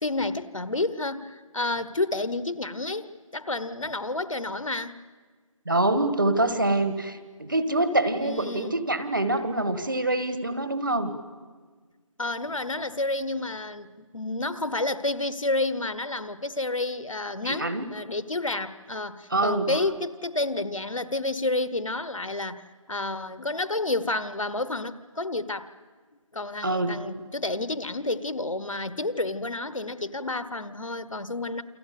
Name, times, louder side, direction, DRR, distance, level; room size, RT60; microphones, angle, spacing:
voice 1, 0.0-3.1 3.3-5.0 8.2-8.8 12.2-25.7 26.3-31.6, left 2 dB, 65° left, 14 dB, 1.3 m, -30 dB
voice 2, 5.6-11.1 17.4-17.8 19.3-19.8 26.6-27.0, right 2 dB, 35° right, 11 dB, 1.5 m, -25 dB
29.0 x 24.0 x 8.5 m, 1.5 s
figure-of-eight pair, 180°, 18 cm